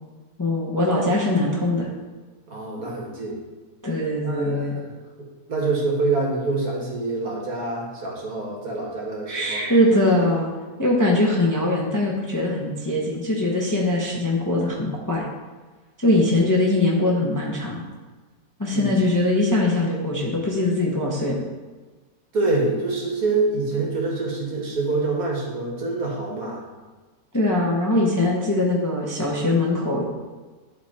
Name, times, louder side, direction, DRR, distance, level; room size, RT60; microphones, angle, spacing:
voice 1, 0.4-1.9 3.8-4.7 9.3-10.5 10.8-15.3 16.0-17.8 18.6-21.4 27.3-30.0, left 1 dB, 15° left, -3 dB, 0.8 m, -22 dB
voice 2, 2.5-3.4 4.2-4.9 5.2-9.7 18.7-19.1 22.3-26.6, right 3 dB, 60° right, -2 dB, 2.0 m, -26 dB
11.5 x 4.0 x 4.2 m, 1.3 s
omnidirectional pair, 1.8 m